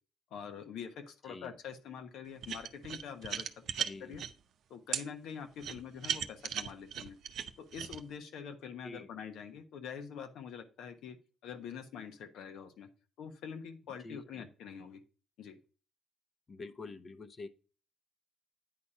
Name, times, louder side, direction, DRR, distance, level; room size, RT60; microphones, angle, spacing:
voice 1, 0.3-4.2 4.7-7.2 7.6-11.2 11.4-12.9 13.2-15.0 15.4-15.6, left 7 dB, 80° left, 8 dB, 1.1 m, -45 dB
sound 1, 2.4-4.3 4.9-5.0 5.6-8.0, right 9 dB, 75° right, 0.6 m, -37 dB
voice 2, 3.8-4.2 8.8-9.1 14.0-14.5 16.5-17.5, left 3 dB, 40° left, 10 dB, 0.9 m, -46 dB
9.4 x 4.2 x 4.9 m, 0.37 s
cardioid pair, 90°, 0 cm